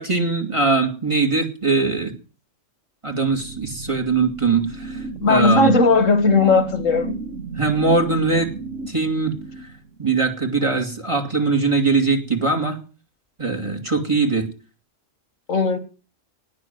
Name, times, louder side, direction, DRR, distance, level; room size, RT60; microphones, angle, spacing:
voice 1, 0.0-2.1 3.0-5.0 5.3-5.7 7.5-8.5 8.9-9.3 10.0-12.8 13.4-14.5, right 3 dB, 25° right, 2.4 m, -21 dB
sound 1, 3.2-10.0, right 3 dB, 70° right, 1.8 m, -34 dB
voice 2, 5.2-7.1 15.5-15.8, left 3 dB, 85° left, 2.2 m, -17 dB
19.0 x 6.4 x 9.4 m
omnidirectional pair, 1.3 m